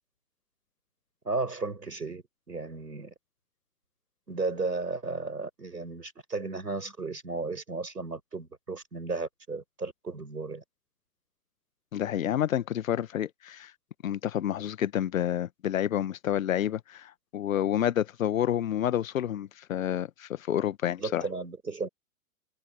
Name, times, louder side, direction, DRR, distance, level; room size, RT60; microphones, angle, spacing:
voice 1, 1.2-3.1 4.3-10.6 21.0-21.9, right 3 dB, 85° right, 5.2 m, -34 dB
voice 2, 11.9-13.7 14.0-21.2, left 10 dB, 55° left, 1.5 m, -29 dB
figure-of-eight pair, 115°, 47 cm